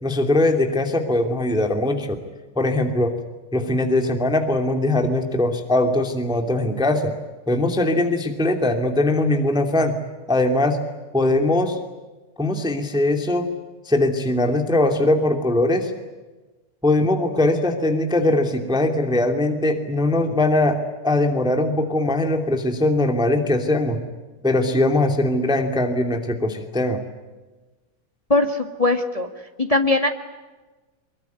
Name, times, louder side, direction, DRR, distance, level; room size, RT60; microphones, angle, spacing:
voice 1, 0.0-2.2 2.6-3.2 3.5-7.2 7.5-9.9 10.3-10.8 11.1-11.8 12.4-13.5 13.9-15.9 16.8-24.0 24.4-27.0, left 2 dB, ahead, 5 dB, 2.1 m, -21 dB
voice 2, 28.3-29.3 29.6-30.1, left 2 dB, 25° left, 5 dB, 0.8 m, -20 dB
24.0 x 23.0 x 9.5 m, 1.2 s
omnidirectional pair, 3.7 m